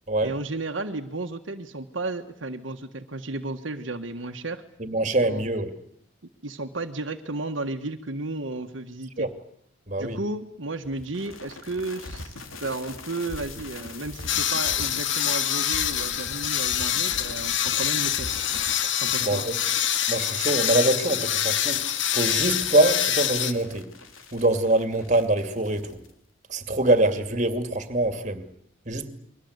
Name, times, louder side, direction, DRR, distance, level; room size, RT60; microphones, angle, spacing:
voice 1, 0.2-4.6 5.0-5.4 6.4-9.3 10.0-18.3 19.0-19.4, right 2 dB, 70° right, 1.6 m, -33 dB
voice 2, 4.8-5.7 9.2-9.3 9.9-10.2 19.2-19.5 20.1-21.8 22.1-23.9 24.3-25.9 26.5-28.4 28.9-29.1, right 2 dB, 35° right, 2.5 m, -24 dB
sound 1, 10.8-26.1, left 3 dB, 90° left, 3.8 m, -41 dB
sound 2, 14.3-23.5, left 10 dB, 65° left, 1.5 m, -25 dB
29.5 x 23.0 x 8.2 m
head